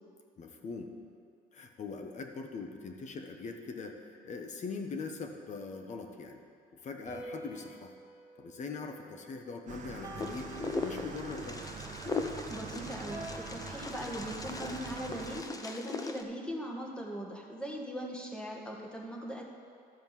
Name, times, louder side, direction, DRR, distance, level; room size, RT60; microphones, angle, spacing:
voice 1, 0.4-0.9 1.5-6.4 6.7-7.9 8.3-10.6 10.8-11.6, left 4 dB, 45° left, 4 dB, 1.2 m, -41 dB
sound 1, 7.0-9.5 10.0-11.5 13.1-14.8, right 1 dB, 20° right, 2.4 m, -48 dB
sound 2, 9.7-15.4, right 6 dB, 50° right, 0.9 m, -45 dB
Wind, 10.2-16.2, left 3 dB, 20° left, 0.7 m, -39 dB
voice 2, 12.5-19.4, equal, 5° left, -1 dB, 1.7 m, -40 dB
13.0 x 5.2 x 7.5 m, 2.3 s
cardioid pair, 110°, 17 cm